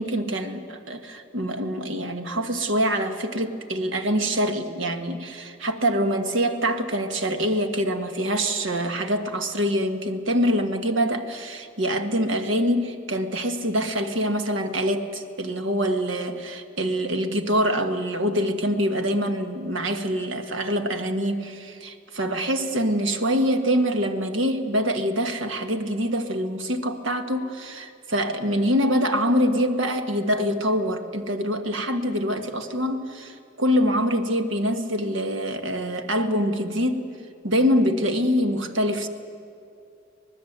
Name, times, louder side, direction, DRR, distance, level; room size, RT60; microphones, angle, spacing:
voice 1, 0.0-37.1 37.4-39.1, equal, 85° right, 6 dB, 1.6 m, -25 dB
25.0 x 19.5 x 8.1 m, 2.5 s
head